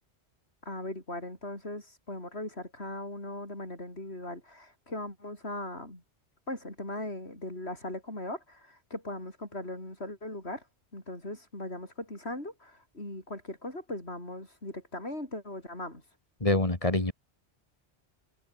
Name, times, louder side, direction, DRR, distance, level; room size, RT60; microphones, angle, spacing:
voice 1, 0.6-6.0 6.5-10.6 10.9-16.0, left 1 dB, 70° left, 8.3 m, -39 dB
voice 2, 16.4-17.1, left 2 dB, 30° left, 2.7 m, -25 dB
omnidirectional pair, 1.1 m